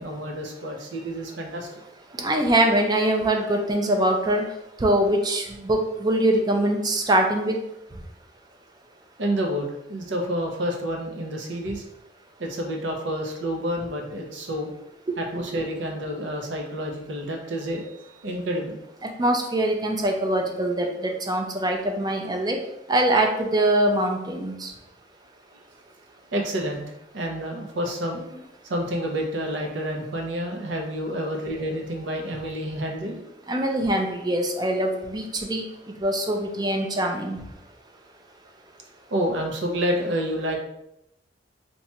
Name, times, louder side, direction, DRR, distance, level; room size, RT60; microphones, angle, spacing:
voice 1, 0.0-1.7 9.2-11.8 12.4-14.7 15.2-18.8 26.3-26.8 27.1-28.2 28.7-33.2 39.1-40.6, equal, 85° right, 2 dB, 0.6 m, -29 dB
voice 2, 2.2-4.4 4.8-7.6 15.4-15.6 19.2-22.6 22.9-24.7 33.5-35.6 36.0-37.4, right 1 dB, 20° right, 3 dB, 0.4 m, -23 dB
2.8 x 2.3 x 4.1 m, 0.83 s
head